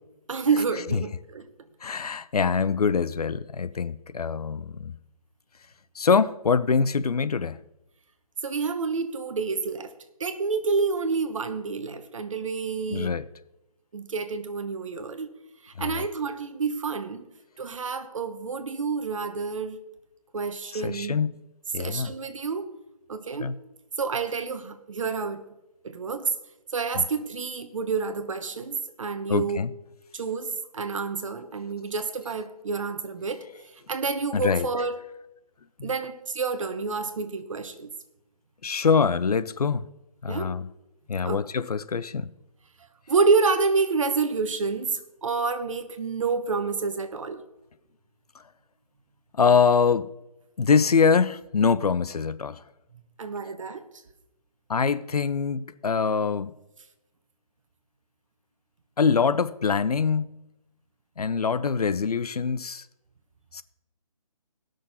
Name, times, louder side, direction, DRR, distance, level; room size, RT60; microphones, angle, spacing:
voice 1, 0.3-1.5 8.4-9.9 10.2-13.1 13.9-15.3 15.6-17.3 17.6-19.8 20.3-21.2 21.8-22.7 23.1-23.5 24.0-25.5 25.8-26.3 26.7-29.6 30.1-33.4 33.7-35.0 35.8-37.9 40.3-40.5 41.2-41.4 43.1-47.4 53.2-53.8, right 4 dB, 55° right, 1.2 m, -28 dB
voice 2, 1.8-5.0 6.0-7.6 12.9-13.2 15.8-16.0 20.7-21.4 21.7-22.1 23.4-23.5 27.0-27.1 29.3-29.7 34.3-34.7 35.8-35.9 38.6-39.8 40.2-40.6 41.1-42.3 49.4-50.1 50.6-52.6 54.7-56.5 59.0-60.4 61.2-62.8 63.5-63.6, left 5 dB, 80° left, 0.6 m, -24 dB
18.0 x 6.5 x 4.1 m
figure-of-eight pair, 160°, 19 cm